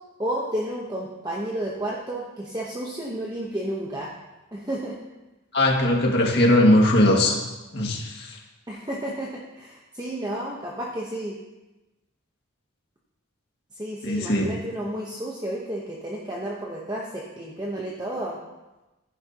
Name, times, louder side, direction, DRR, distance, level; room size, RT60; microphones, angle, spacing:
voice 1, 0.2-4.1 4.5-5.0 8.7-11.4 13.8-18.4, right 1 dB, 20° right, -3 dB, 1.0 m, -31 dB
voice 2, 5.5-7.4 7.7-8.4 14.0-14.5, left 1 dB, 50° left, 0 dB, 2.0 m, -19 dB
14.5 x 10.5 x 2.9 m, 1.1 s
head